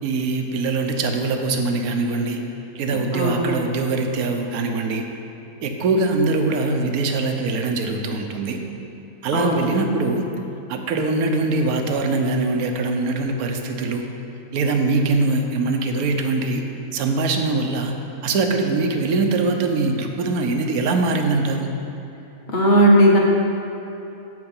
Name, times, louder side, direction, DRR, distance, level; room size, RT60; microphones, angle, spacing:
voice 1, 0.0-2.4 2.7-5.0 5.6-8.6 9.2-10.3 10.7-14.1 14.5-16.6 16.9-17.9 18.2-21.7, right 3 dB, 75° right, 4 dB, 1.3 m, -22 dB
voice 2, 3.1-3.6 9.3-9.7 22.5-23.2, right 1 dB, 35° left, -3 dB, 1.4 m, -16 dB
8.1 x 7.8 x 5.4 m, 3.0 s
omnidirectional pair, 1.6 m